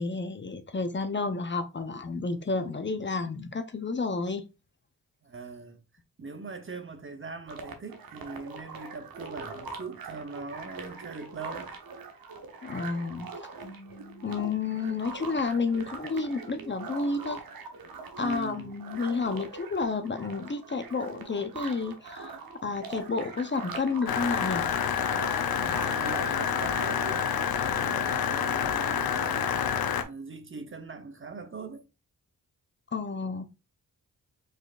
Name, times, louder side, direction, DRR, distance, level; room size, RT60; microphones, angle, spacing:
voice 1, 0.0-4.4 12.6-13.3 14.2-17.4 18.2-24.7 32.9-33.4, left 4 dB, 30° left, 0.8 m, -31 dB
voice 2, 5.2-5.8 6.2-11.7 18.2-18.8 25.6-27.4 27.7-29.6 30.0-31.8, right 4 dB, 35° right, 0.9 m, -41 dB
sound 1, 7.5-27.1, right 4 dB, 70° right, 1.1 m, -42 dB
sound 2, 13.6-16.8, equal, 10° right, 2.2 m, -53 dB
sound 3, 24.1-30.0, left 8 dB, 75° left, 0.7 m, -28 dB
5.1 x 4.0 x 2.5 m
cardioid pair, 55°, 36 cm